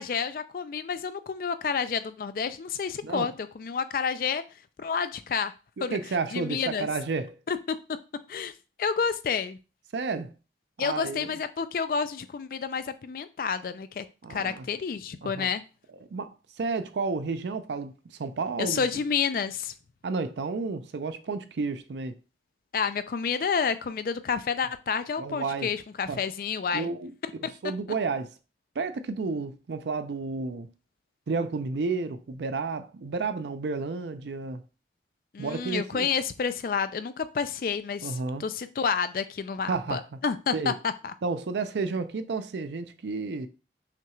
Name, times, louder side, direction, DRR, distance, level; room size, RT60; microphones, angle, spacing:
voice 1, 0.0-4.4 4.8-5.5 5.8-6.0 6.3-6.9 7.5-7.8 8.3-8.5 8.8-9.6 10.8-14.0 14.3-15.6 18.6-19.7 22.7-26.9 35.3-41.1, left 6 dB, 50° left, 0.3 m, -29 dB
voice 2, 5.8-7.4 9.9-10.3 10.8-11.3 14.2-14.7 15.2-15.5 16.1-16.3 16.6-18.9 20.0-22.1 25.2-25.7 26.1-26.2 26.7-27.1 27.6-28.3 28.8-30.7 31.3-34.6 35.4-36.1 38.0-38.4 39.7-40.2 40.5-40.7 41.2-43.5, right 4 dB, 80° right, 0.5 m, -31 dB
5.8 x 2.4 x 3.0 m
head